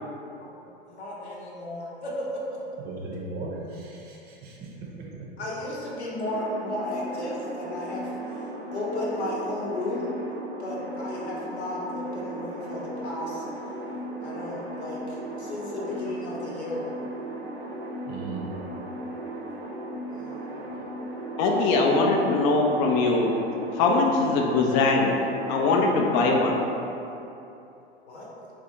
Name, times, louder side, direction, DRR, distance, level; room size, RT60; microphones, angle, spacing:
voice 1, 0.9-2.6 5.4-8.1 8.7-10.2 10.6-13.4 14.2-16.9 20.1-20.5 28.1-28.3, left 1 dB, 85° left, -4 dB, 0.9 m, -34 dB
voice 2, 2.8-5.3 18.1-18.5, right 3 dB, 30° right, -3 dB, 0.6 m, -37 dB
sound 1, 6.2-25.8, right 1 dB, 65° right, 0.8 m, -36 dB
voice 3, 21.4-23.3 23.7-25.2 25.5-26.6, left 3 dB, 35° left, 0 dB, 0.4 m, -21 dB
4.0 x 2.3 x 2.9 m, 2.9 s
hypercardioid pair, 100°, 32 cm